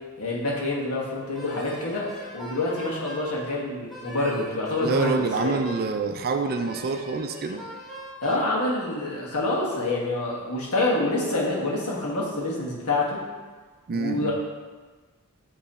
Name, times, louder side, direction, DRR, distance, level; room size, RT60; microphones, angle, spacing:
voice 1, 0.2-2.1 2.3-5.6 8.2-13.2 13.9-14.3, left 2 dB, 80° left, -4 dB, 1.4 m, -27 dB
Wind instrument woodwind instrument, 1.3-3.3 3.9-5.9 6.5-8.5, right 1 dB, ahead, 1.0 m, -41 dB
voice 2, 4.8-7.6 13.9-14.3, right 4 dB, 45° right, 6 dB, 0.4 m, -27 dB
7.8 x 3.1 x 4.1 m, 1.4 s
head